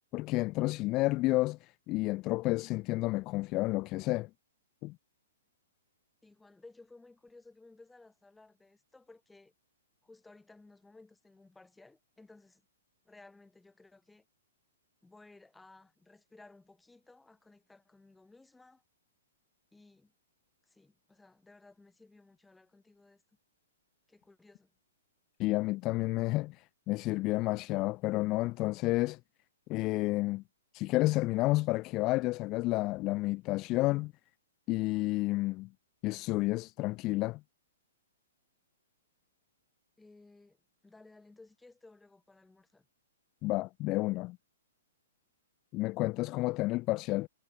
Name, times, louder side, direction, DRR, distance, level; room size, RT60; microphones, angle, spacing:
voice 1, 0.1-4.3 4.8-4.9 25.4-29.2 29.7-30.4 30.7-34.1 34.7-35.7 36.0-37.4 43.4-44.4 45.7-47.3, left 20 dB, 35° left, 0.7 m, -30 dB
voice 2, 6.2-9.5 10.0-12.6 13.0-14.2 15.0-18.8 19.7-20.1 20.7-23.2 24.1-24.7 40.0-40.6 40.8-42.9, left 3 dB, 5° left, 5.3 m, -58 dB
figure-of-eight pair, 115°, 0 cm